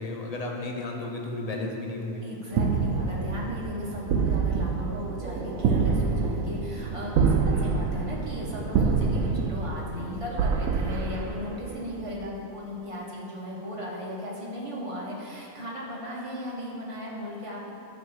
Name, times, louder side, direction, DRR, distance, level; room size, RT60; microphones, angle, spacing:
voice 1, 0.0-2.2, left 2 dB, 35° left, 0 dB, 0.7 m, -33 dB
voice 2, 2.2-17.7, left 1 dB, 25° right, -4 dB, 1.2 m, -37 dB
sound 1, 2.5-12.0, right 5 dB, 90° right, 1.0 m, -27 dB
9.2 x 3.2 x 6.4 m, 2.8 s
omnidirectional pair, 1.4 m